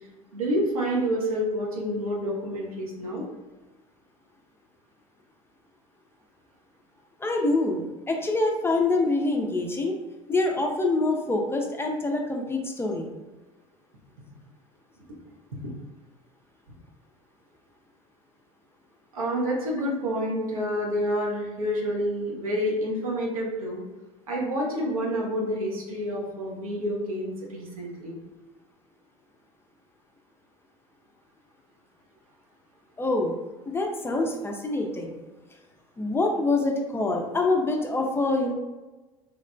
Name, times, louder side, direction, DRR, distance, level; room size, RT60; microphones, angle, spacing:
voice 1, 0.3-3.2 15.5-15.7 19.1-23.8 24.3-28.2, equal, 80° right, -1 dB, 0.6 m, -28 dB
voice 2, 7.2-7.8 8.1-9.9 10.3-13.1 33.0-33.3 33.7-35.1 36.0-38.5, left 2 dB, 15° left, 2 dB, 0.3 m, -25 dB
3.1 x 2.0 x 2.4 m, 1.2 s
figure-of-eight pair, 70°, 18 cm